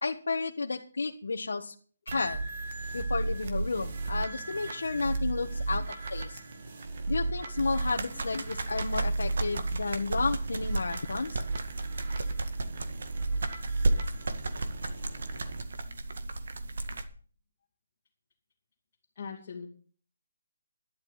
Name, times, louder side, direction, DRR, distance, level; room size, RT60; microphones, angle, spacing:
voice 1, 0.0-1.7 2.1-2.4 2.9-5.8 6.1-6.4 7.1-11.4, left 3 dB, 80° left, 1 dB, 1.4 m, -32 dB
sound 1, 2.1-15.6, right 3 dB, 35° right, 1.9 m, -35 dB
sound 2, 7.8-17.0, right 2 dB, 55° right, 2.0 m, -34 dB
voice 2, 19.1-19.7, left 6 dB, 30° left, -2 dB, 2.7 m, -41 dB
12.0 x 11.5 x 5.8 m, 0.43 s
hypercardioid pair, 175°, 0 cm